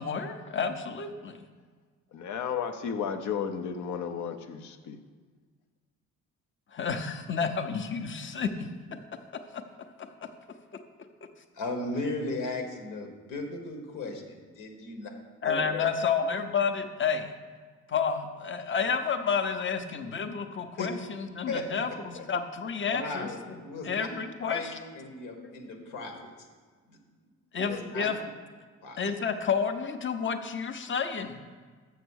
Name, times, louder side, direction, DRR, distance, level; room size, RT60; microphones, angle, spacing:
voice 1, 0.0-1.4 6.7-8.7 15.4-17.3 17.9-23.6 23.8-24.7 27.5-28.2 29.0-31.4, left 6 dB, 40° left, 7 dB, 0.8 m, -30 dB
voice 2, 2.1-5.0, left 7 dB, 70° left, 8 dB, 0.8 m, -33 dB
voice 3, 11.5-15.1 15.4-15.9 20.8-20.9 21.5-21.7 22.1-22.2 22.8-24.1 24.4-26.3 26.9-27.0 27.6-28.1 28.8-29.0, left 3 dB, 85° left, 3 dB, 1.5 m, -36 dB
7.0 x 6.5 x 6.4 m, 1.5 s
cardioid pair, 90°, 31 cm